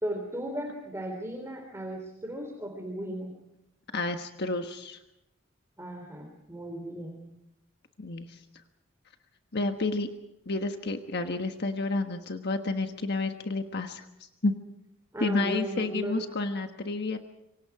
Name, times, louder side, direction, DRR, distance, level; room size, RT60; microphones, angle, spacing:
voice 1, 0.0-3.3 5.8-7.3 15.1-16.3, right 1 dB, 15° right, 2 dB, 3.4 m, -36 dB
voice 2, 3.9-5.0 8.0-8.4 9.5-10.1 10.5-14.0 14.4-14.5 15.2-17.2, left 3 dB, 55° left, 6 dB, 1.4 m, -30 dB
27.5 x 24.5 x 4.9 m, 0.86 s
head